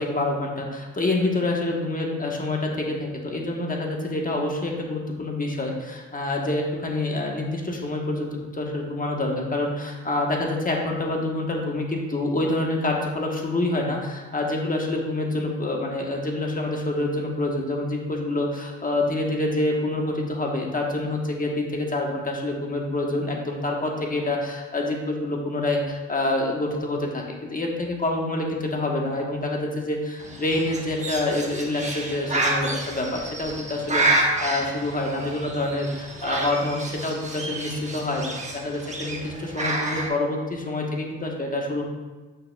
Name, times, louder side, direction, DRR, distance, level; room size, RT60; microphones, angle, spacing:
voice 1, 0.0-41.8, left 2 dB, 30° left, 0 dB, 1.2 m, -27 dB
Bird, 30.2-40.1, right 2 dB, 25° right, 1.2 m, -29 dB
8.4 x 6.5 x 2.3 m, 1.3 s
cardioid pair, 90°, 30 cm